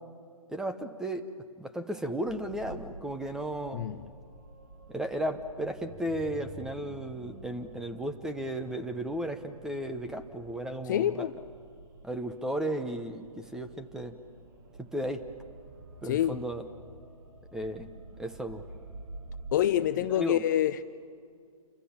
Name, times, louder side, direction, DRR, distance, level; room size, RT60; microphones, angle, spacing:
voice 1, 0.5-1.2 1.6-4.0 4.9-11.3 12.0-14.2 14.8-15.3 16.0-16.6 17.5-17.9 18.2-18.6 20.1-20.4, right 1 dB, 5° right, 8 dB, 0.9 m, -34 dB
sound 1, 2.3-19.5, right 2 dB, 35° right, 2.8 m, -49 dB
voice 2, 3.7-4.1 10.8-11.4 16.0-16.4 19.5-20.8, left 11 dB, 30° left, 12 dB, 0.6 m, -27 dB
29.5 x 25.5 x 7.2 m, 2.1 s
figure-of-eight pair, 135°, 19 cm